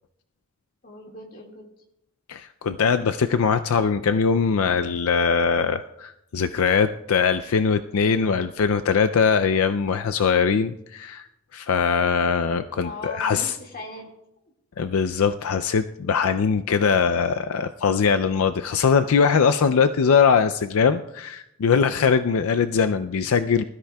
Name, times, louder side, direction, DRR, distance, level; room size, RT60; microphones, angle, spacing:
voice 1, 0.8-1.7 12.8-14.1, left 2 dB, 40° left, 1 dB, 2.0 m, -39 dB
voice 2, 2.3-11.3 11.5-13.5 14.8-23.6, left 6 dB, 80° left, 10 dB, 0.4 m, -21 dB
21.0 x 13.0 x 2.3 m, 0.82 s
head